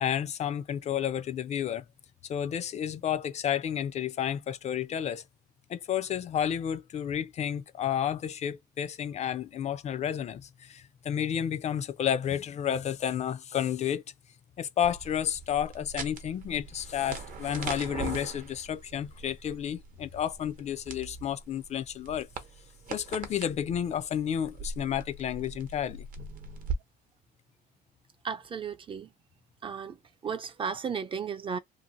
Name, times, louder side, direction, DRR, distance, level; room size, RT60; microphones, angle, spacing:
voice 1, 0.0-1.8 2.3-5.2 5.7-14.0 14.6-22.3 22.9-26.1, left 9 dB, 40° left, 0.4 m, -31 dB
sound 1, 14.8-26.8, right 4 dB, 55° right, 0.8 m, -41 dB
voice 2, 28.2-29.1 29.6-30.0 30.2-31.6, right 6 dB, 30° right, 0.4 m, -34 dB
2.7 x 2.4 x 2.6 m
cardioid pair, 110°, 17 cm